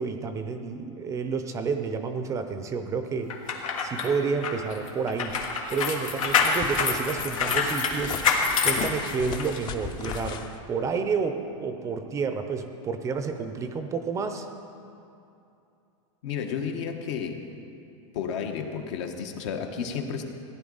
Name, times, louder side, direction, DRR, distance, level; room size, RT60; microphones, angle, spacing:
voice 1, 0.0-3.4 3.8-5.3 5.7-8.2 8.6-10.4 10.7-14.5, right 5 dB, 20° right, 7 dB, 0.5 m, -30 dB
sound 1, 3.3-9.6 10.0-10.2, left 5 dB, 90° left, 1.6 m, -26 dB
sound 2, 6.2-10.6, left 6 dB, 25° left, 0.6 m, -37 dB
voice 2, 16.2-17.5 18.1-20.2, left 6 dB, 65° left, 5 dB, 1.2 m, -32 dB
16.0 x 10.5 x 4.0 m, 2.7 s
supercardioid pair, 150°, 17 cm